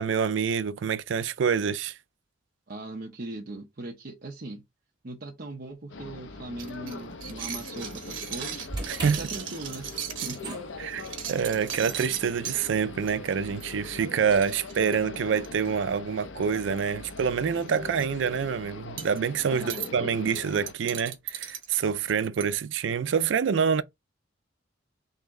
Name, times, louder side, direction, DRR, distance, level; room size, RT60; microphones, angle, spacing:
voice 1, 0.0-2.0 8.9-9.2 10.8-11.0 11.3-23.8, right 6 dB, 75° right, 0.4 m, -26 dB
voice 2, 2.7-4.6 5.0-8.6 9.0-10.6 19.5-19.9, right 2 dB, 50° right, 0.8 m, -39 dB
sound 1, 5.9-20.7, left 3 dB, 75° left, 0.6 m, -41 dB
sound 2, 6.6-10.4 10.9-12.6 13.1-13.3 13.6-13.7 14.0-14.1 14.3-15.7 16.4-16.8 17.1-17.2 17.6-18.0 19.0-19.2 19.7-19.9 20.3-22.6, right 9 dB, 90° right, 1.0 m, -37 dB
sound 3, 8.7-14.9, right 2 dB, 25° right, 1.7 m, -43 dB
3.9 x 2.9 x 3.6 m
head